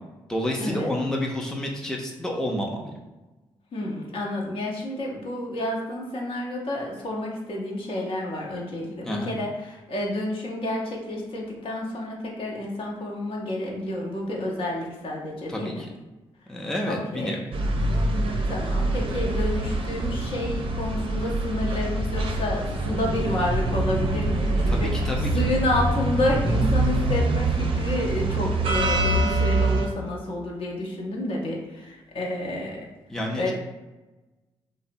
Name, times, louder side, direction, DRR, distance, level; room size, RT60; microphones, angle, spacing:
voice 1, 0.3-2.9 9.0-9.3 15.5-15.9 16.5-17.4 24.7-25.4 33.1-33.5, left 1 dB, 5° left, -1 dB, 0.5 m, -29 dB
voice 2, 3.7-15.9 16.8-17.4 18.4-25.0 25.3-32.9 33.3-33.5, left 1 dB, 55° left, -2 dB, 0.7 m, -30 dB
sound 1, 17.5-29.9, right 2 dB, 55° right, 0.5 m, -25 dB
2.7 x 2.0 x 2.5 m, 1.1 s
supercardioid pair, 50°, 11 cm